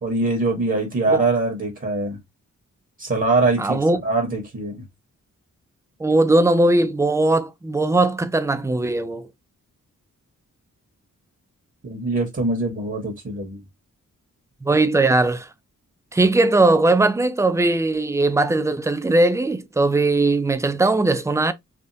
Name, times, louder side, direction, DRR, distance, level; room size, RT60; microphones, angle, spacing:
voice 1, 0.0-2.2 3.0-4.8 11.8-13.6, right 3 dB, 40° right, 1.2 m, -23 dB
voice 2, 3.6-4.0 6.0-9.3 14.6-15.5 16.1-21.5, right 2 dB, 10° right, 0.4 m, -19 dB
3.5 x 2.5 x 2.7 m
wide cardioid pair, 115°, 32 cm